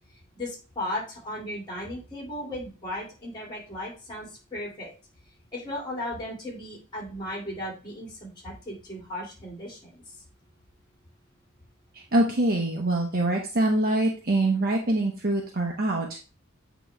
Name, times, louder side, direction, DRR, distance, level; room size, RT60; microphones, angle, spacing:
voice 1, 0.4-4.9 5.5-10.1, left 1 dB, 20° left, -2 dB, 2.3 m, -36 dB
voice 2, 11.9-16.2, right 1 dB, 45° right, 0 dB, 0.9 m, -24 dB
8.5 x 3.0 x 4.5 m, 0.35 s
head